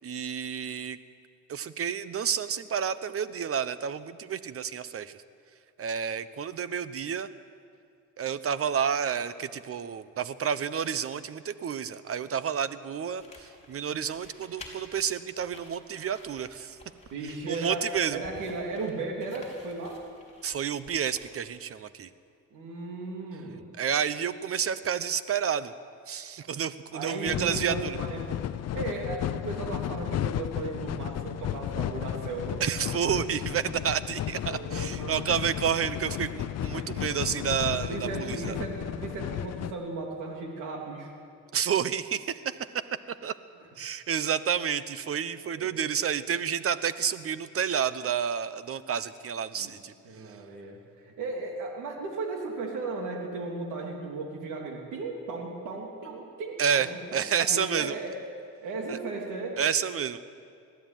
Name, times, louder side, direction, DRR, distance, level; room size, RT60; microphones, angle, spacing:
voice 1, 0.0-1.0 1.5-5.2 5.8-7.3 8.2-16.8 17.5-18.2 20.4-22.1 23.8-25.7 26.1-28.0 32.6-38.5 41.5-42.8 43.2-43.4 43.8-49.9 56.6-58.0 58.9-59.0 59.6-60.2, right 8 dB, 50° right, 14 dB, 1.0 m, -30 dB
sound 1, 13.2-21.6, left 2 dB, 20° left, 4.5 m, -52 dB
voice 2, 17.1-20.0 22.5-23.7 26.9-28.4 28.7-32.6 34.5-35.3 36.6-36.9 37.9-41.1 45.5-45.9 49.5-49.7 50.0-58.2 58.6-59.6, right 3 dB, 85° right, 1 dB, 3.2 m, -36 dB
sound 2, 27.3-39.7, left 11 dB, 55° left, 0.6 m, -34 dB
20.5 x 14.0 x 9.2 m, 2.5 s
cardioid pair, 90°, 30 cm